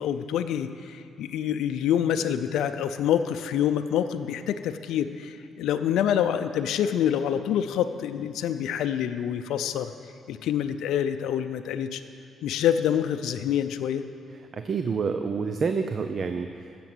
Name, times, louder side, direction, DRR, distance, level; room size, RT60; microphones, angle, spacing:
voice 1, 0.0-9.9 10.3-12.0 12.4-14.1, left 9 dB, 80° left, 8 dB, 0.5 m, -26 dB
voice 2, 14.5-16.8, right 5 dB, 45° right, 8 dB, 0.6 m, -28 dB
15.0 x 6.9 x 7.8 m, 2.5 s
cardioid pair, 90°, 0 cm